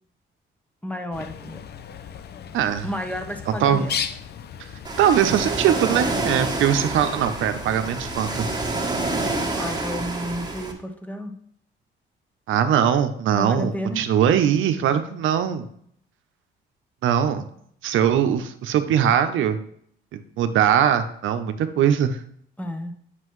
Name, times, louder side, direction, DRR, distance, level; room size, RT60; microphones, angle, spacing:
voice 1, 0.8-1.6 2.8-4.0 9.5-11.3 13.3-14.0 22.6-23.0, equal, 5° left, 5 dB, 1.0 m, -31 dB
Bird, 1.1-9.5, left 8 dB, 55° left, 0.5 m, -37 dB
voice 2, 2.5-2.9 3.6-3.9 5.0-8.5 12.5-15.7 17.0-17.4 17.8-19.6 20.1-22.2, right 9 dB, 80° right, 9 dB, 0.7 m, -21 dB
Ocean, 4.8-10.7, right 2 dB, 20° right, 1.6 m, -28 dB
7.7 x 5.9 x 3.1 m, 0.66 s
cardioid pair, 90°, 20 cm